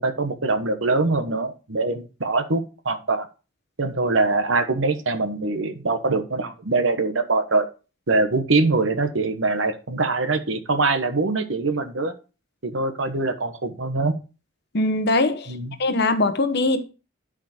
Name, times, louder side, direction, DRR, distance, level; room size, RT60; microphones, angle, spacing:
voice 1, 0.0-3.3 3.8-7.7 8.1-12.1 12.6-14.1 15.5-15.7, right 3 dB, 65° right, 1.2 m, -23 dB
voice 2, 14.7-15.5 15.8-16.8, left 2 dB, 50° left, 1.0 m, -21 dB
11.5 x 5.2 x 4.3 m
head